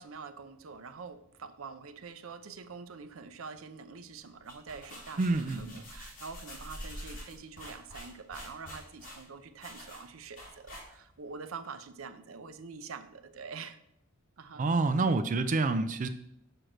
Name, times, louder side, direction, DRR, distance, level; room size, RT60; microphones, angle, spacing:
voice 1, 0.0-5.3 5.6-13.8 14.4-14.7, right 5 dB, 90° right, 11 dB, 0.6 m, -45 dB
sound 1, 4.3-11.2, equal, 40° left, 2.8 m, -47 dB
voice 2, 5.2-5.8 14.5-16.1, right 3 dB, 40° right, 9 dB, 0.4 m, -28 dB
6.3 x 4.5 x 6.5 m, 0.77 s
head